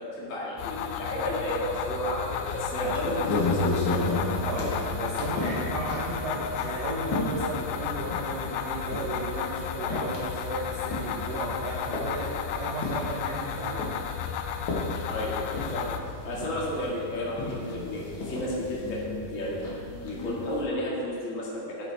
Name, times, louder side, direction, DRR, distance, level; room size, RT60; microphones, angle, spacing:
voice 1, 0.0-4.1 15.1-15.9 16.2-19.6 20.0-21.9, left 1 dB, 30° left, -6 dB, 1.5 m, -32 dB
sound 1, 0.6-16.0, left 8 dB, 80° left, 2.0 m, -33 dB
sound 2, 2.4-20.6, left 2 dB, 65° left, 1.2 m, -34 dB
voice 2, 2.8-3.2 4.4-13.9 16.3-16.5, right 2 dB, 75° right, -5 dB, 1.5 m, -34 dB
12.5 x 8.7 x 3.5 m, 2.4 s
omnidirectional pair, 4.3 m